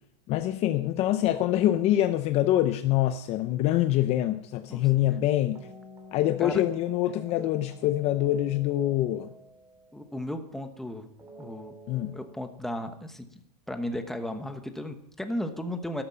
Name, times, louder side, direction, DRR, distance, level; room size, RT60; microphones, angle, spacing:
voice 1, 0.3-5.7 6.1-9.3 11.9-12.1, left 13 dB, 30° left, 10 dB, 0.6 m, -25 dB
sound 1, 5.4-10.5 11.2-12.4, equal, 15° right, 2.6 m, -50 dB
voice 2, 9.9-11.1 11.4-11.7 12.1-13.3 13.7-16.0, left 1 dB, ahead, 7 dB, 1.1 m, -35 dB
12.5 x 12.5 x 5.7 m, 0.74 s
supercardioid pair, 150°, 21 cm